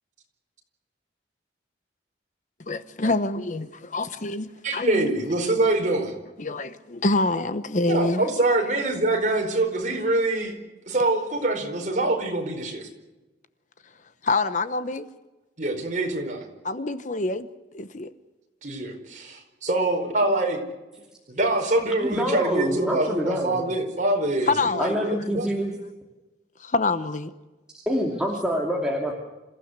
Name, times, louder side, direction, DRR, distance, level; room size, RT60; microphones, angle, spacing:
voice 1, 2.7-5.1 6.4-8.3 14.2-15.1 16.6-17.5 17.7-18.1 24.5-24.9 26.6-27.3, left 3 dB, 45° left, 1.0 m, -26 dB
voice 2, 4.6-6.1 7.8-10.5 10.9-12.9 15.6-16.5 18.6-20.6 21.3-25.5, right 2 dB, 45° right, 4.7 m, -25 dB
voice 3, 22.0-23.6 24.8-25.7 27.9-29.1, equal, 5° right, 2.8 m, -26 dB
27.5 x 15.5 x 8.1 m
head